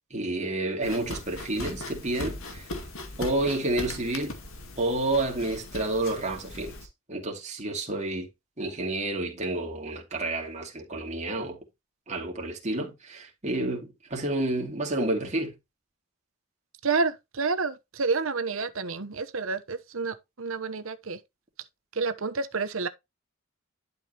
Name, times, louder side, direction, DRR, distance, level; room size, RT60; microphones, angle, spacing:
voice 1, 0.1-2.7 3.2-4.4 4.8-6.7 7.1-8.3 8.6-11.6 12.1-15.6, right 2 dB, 35° right, 2.8 m, -30 dB
sound 1, 0.8-6.9, left 2 dB, 70° left, 2.3 m, -39 dB
voice 2, 16.8-21.2 21.9-22.9, right 4 dB, 70° right, 1.0 m, -29 dB
11.5 x 5.5 x 3.0 m
head